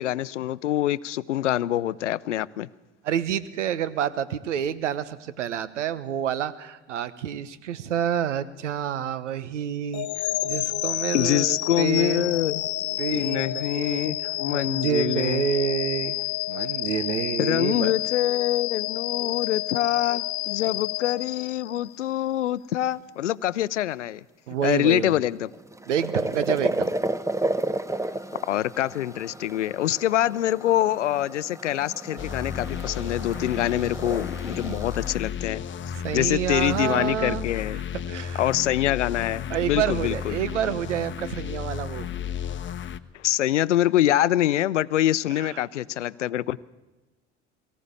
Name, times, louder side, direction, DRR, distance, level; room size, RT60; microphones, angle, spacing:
voice 1, 0.0-2.7 11.1-15.4 17.4-24.2 24.6-25.5 28.5-35.6 36.1-37.8 38.4-40.3 43.1-46.6, left 13 dB, 90° left, 19 dB, 0.6 m, -25 dB
voice 2, 3.0-12.4 13.0-16.2 16.5-17.9 24.5-25.2 25.9-26.9 34.6-34.8 35.9-37.5 38.1-38.5 39.5-42.1 45.4-45.6, right 9 dB, 85° right, 15 dB, 1.1 m, -28 dB
sound 1, 9.9-22.0, left 15 dB, 60° left, 1.0 m, -30 dB
sound 2, 25.3-35.1, right 2 dB, 10° right, 1.1 m, -32 dB
sound 3, 32.2-43.0, left 8 dB, 35° left, 1.1 m, -33 dB
23.0 x 15.0 x 8.3 m, 1.1 s
hypercardioid pair, 70°, 35 cm